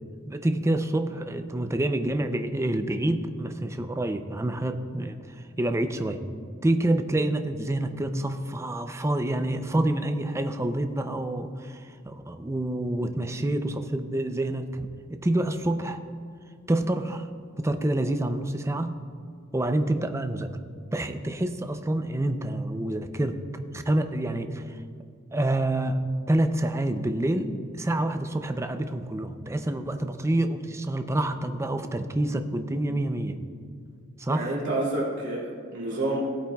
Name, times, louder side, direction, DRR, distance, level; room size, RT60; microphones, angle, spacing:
voice 1, 0.3-5.2 5.6-6.2 6.6-16.0 16.7-17.3 17.6-19.0 19.5-20.5 20.9-23.4 23.7-24.6 25.3-26.0 26.3-33.4 34.2-34.5, right 1 dB, 15° right, 8 dB, 0.5 m, -27 dB
voice 2, 34.3-36.2, right 2 dB, 60° right, -6 dB, 2.6 m, -29 dB
17.0 x 8.5 x 2.3 m, 2.2 s
head